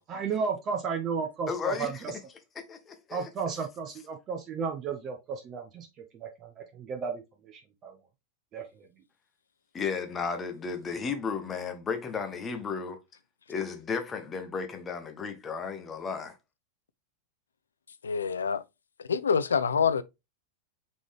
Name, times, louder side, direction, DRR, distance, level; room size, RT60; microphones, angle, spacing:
voice 1, 0.1-2.1 3.1-5.9 6.1-8.0 8.5-8.9, right 5 dB, 30° right, 0.7 m, -34 dB
voice 2, 1.5-2.0 2.7-3.3 9.7-13.0 13.5-16.3, left 5 dB, 20° left, 1.0 m, -34 dB
voice 3, 18.0-18.6 19.1-20.0, left 6 dB, 70° left, 0.3 m, -26 dB
5.3 x 3.2 x 3.1 m
figure-of-eight pair, 90°, 0 cm